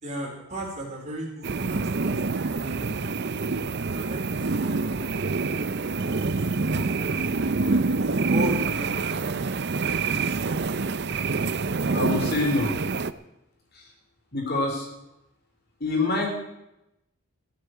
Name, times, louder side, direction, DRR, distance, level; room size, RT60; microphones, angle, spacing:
voice 1, 0.0-3.3 3.9-5.2 6.2-9.4 10.0-10.7, equal, 30° right, -1 dB, 4.4 m, -37 dB
sound 1, 1.4-13.1, right 4 dB, 50° right, 0.6 m, -26 dB
voice 2, 11.9-12.8 13.7-13.9 14.3-14.9 15.8-16.3, left 2 dB, 45° left, 1 dB, 3.9 m, -25 dB
15.5 x 8.5 x 9.6 m, 0.88 s
head